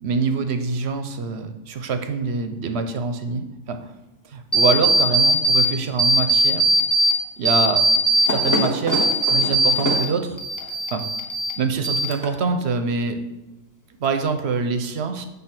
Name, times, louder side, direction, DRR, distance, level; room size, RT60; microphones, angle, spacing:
voice 1, 0.0-3.9 4.2-6.6 7.4-7.8 8.2-10.4 10.9-11.0 11.6-13.2 14.0-15.3, right 5 dB, 60° right, 7 dB, 0.9 m, -25 dB
sound 1, 4.5-5.7 6.0-7.1 7.5-10.1 10.4-11.5 11.8-12.5, right 1 dB, 15° left, 0.8 m, -19 dB
7.8 x 3.7 x 5.8 m, 1.0 s
omnidirectional pair, 1.4 m